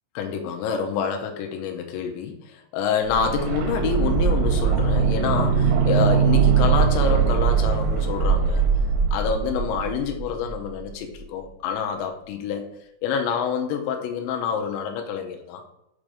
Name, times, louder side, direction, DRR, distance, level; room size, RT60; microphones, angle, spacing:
voice 1, 0.2-8.6 9.1-12.7 13.0-15.6, left 7 dB, 80° left, 4 dB, 2.8 m, -27 dB
sound 1, 3.1-10.9 11.1-11.2, right 6 dB, 90° right, 3.2 m, -21 dB
7.5 x 2.6 x 4.9 m, 0.84 s
omnidirectional pair, 5.5 m